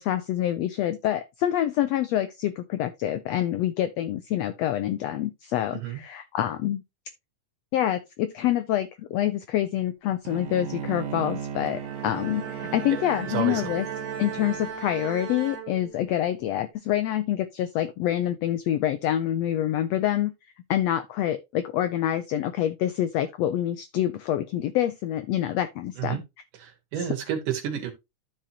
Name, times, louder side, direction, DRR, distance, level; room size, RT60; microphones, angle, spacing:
voice 1, 0.0-6.8 7.7-13.9 14.2-20.3 20.7-26.2 27.0-27.1, left 12 dB, 80° left, 1.5 m, -26 dB
Bowed string instrument, 10.3-14.8, right 8 dB, 75° right, 2.4 m, -36 dB
Bowed string instrument 2, 11.7-16.3, right 7 dB, 55° right, 2.5 m, -38 dB
voice 2, 13.3-13.7 26.0-26.2 26.6-27.9, right 9 dB, 90° right, 3.2 m, -30 dB
13.5 x 4.5 x 2.8 m
omnidirectional pair, 3.6 m